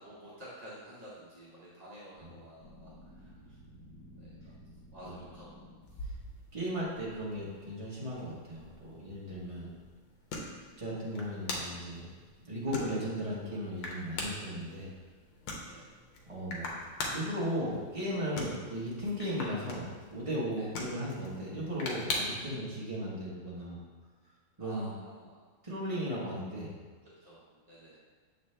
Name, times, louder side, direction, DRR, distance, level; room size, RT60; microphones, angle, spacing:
voice 1, 0.0-3.6 4.2-4.5 4.9-6.1 10.5-10.7 15.6-15.9 20.5-20.7 24.6-25.5 27.0-28.0, equal, 45° right, -8 dB, 0.5 m, -51 dB
sound 1, 2.6-6.3, equal, 70° left, 2.1 m, -53 dB
sound 2, 5.8-22.6, left 2 dB, 85° left, 1.7 m, -43 dB
voice 2, 6.5-9.7 10.8-12.1 12.4-14.9 16.3-16.7 17.1-23.8 24.6-24.9 25.6-26.8, equal, 20° right, -7 dB, 0.9 m, -36 dB
7.1 x 4.1 x 3.3 m, 1.4 s
omnidirectional pair, 2.3 m